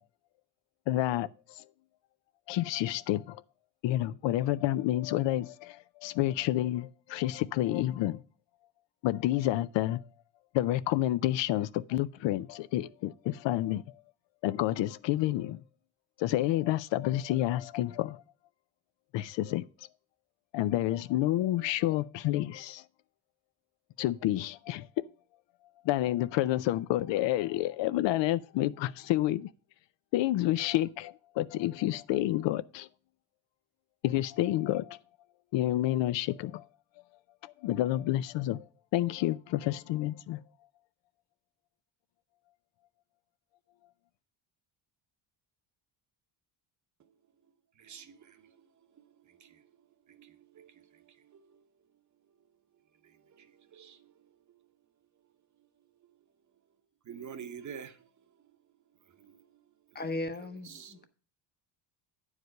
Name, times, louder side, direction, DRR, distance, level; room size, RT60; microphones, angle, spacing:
voice 1, 0.9-1.6 2.5-3.4 3.8-8.2 9.0-10.1 10.5-13.8 14.4-15.6 16.2-18.2 19.1-19.7 20.5-22.8 24.0-25.1 25.8-29.5 30.1-32.9 34.0-35.0 35.5-36.7 37.4-38.6 38.9-40.4, left 14 dB, 65° left, 0.5 m, -29 dB
voice 2, 47.7-51.6 53.0-54.7 55.6-56.1 57.0-58.4 59.0-60.0 60.4-61.1, right 7 dB, 40° right, 0.9 m, -50 dB
voice 3, 59.9-61.1, left 2 dB, 20° left, 0.8 m, -37 dB
9.4 x 4.9 x 6.4 m
cardioid pair, 125°, 47 cm